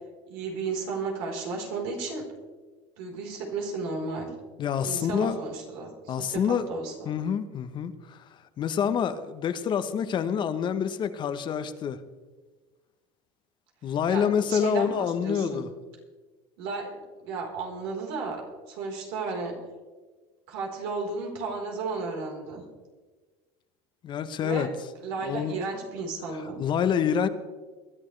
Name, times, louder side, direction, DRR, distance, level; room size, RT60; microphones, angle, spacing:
voice 1, 0.3-2.2 3.0-4.3 4.8-7.1 14.1-15.7 16.6-19.6 20.5-22.6 24.4-24.7 25.0-26.6, right 4 dB, 80° right, 0 dB, 4.1 m, -34 dB
voice 2, 4.6-5.4 6.1-6.7 7.1-8.3 8.6-12.0 13.8-15.7 24.0-24.7 25.2-25.6 26.6-27.3, left 8 dB, 40° left, 11 dB, 1.0 m, -27 dB
22.0 x 11.0 x 3.3 m, 1.3 s
supercardioid pair, 125°, 13 cm